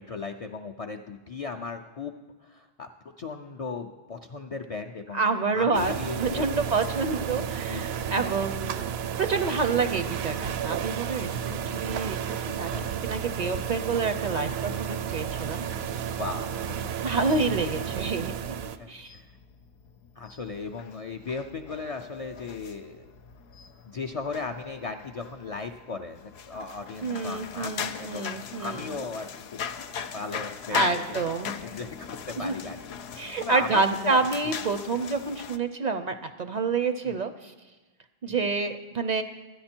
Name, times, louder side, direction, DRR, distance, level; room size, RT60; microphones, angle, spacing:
voice 1, 0.0-2.1 2.4-2.9 3.2-5.2 5.5-6.6 7.7-8.0 9.6-9.7 11.2-11.9 12.7-13.0 16.2-16.6 17.1-17.6 18.0-18.2 18.8-19.3 20.2-23.1 23.8-29.6 30.1-31.2 31.6-34.5 37.0-37.2 38.3-38.5, left 4 dB, 55° left, 3 dB, 0.4 m, -37 dB
voice 2, 5.1-5.9 6.2-12.7 13.0-15.6 17.0-18.3 18.9-19.1 27.0-28.8 30.7-31.5 32.4-32.5 33.2-37.5 38.2-39.2, right 4 dB, 55° right, 9 dB, 0.5 m, -28 dB
sound 1, 5.7-18.8, right 8 dB, 80° right, 0.8 m, -32 dB
sound 2, 17.2-35.6, left 7 dB, 85° left, 0.8 m, -39 dB
12.5 x 10.0 x 4.4 m, 1.2 s
omnidirectional pair, 1.1 m